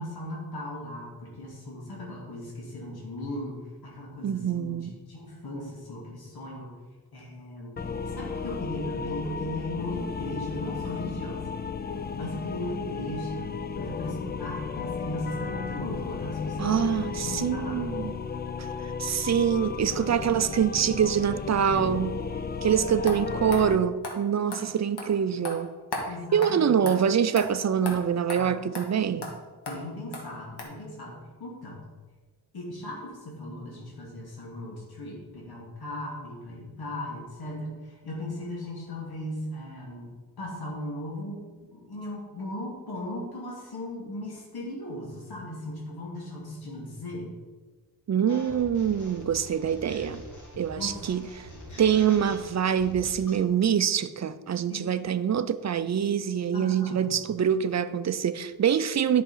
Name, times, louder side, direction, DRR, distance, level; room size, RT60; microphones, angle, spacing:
voice 1, 0.0-6.7 7.1-11.5 12.1-18.0 21.7-21.9 24.6-24.7 26.1-26.8 28.4-28.5 28.8-29.2 29.7-31.8 32.5-40.1 40.4-41.4 41.7-47.3 50.8-51.0 54.7-54.8 56.5-57.2, left 1 dB, 65° left, 2.6 m, -37 dB
voice 2, 4.2-4.9 16.6-18.1 19.0-22.2 22.6-25.7 26.3-29.3 48.1-50.2 50.6-51.5 51.8-59.2, right 8 dB, 45° right, 0.5 m, -25 dB
sound 1, 7.8-23.8, left 5 dB, 25° left, 0.4 m, -34 dB
sound 2, 23.1-23.2 23.5-23.6 24.0-24.2 24.5-24.6 25.0-25.1 25.4-25.6 25.9-26.1 26.4-26.5 26.9-27.0 27.4-27.5 27.9-28.0 28.3-28.4 28.7-28.9 29.2-29.3 29.7-29.8 30.1-30.2 30.6-30.7, left 2 dB, 90° left, 2.1 m, -34 dB
sound 3, 48.3-53.4, left 1 dB, 45° left, 2.3 m, -44 dB
11.0 x 6.0 x 5.5 m
wide cardioid pair, 155°, 39 cm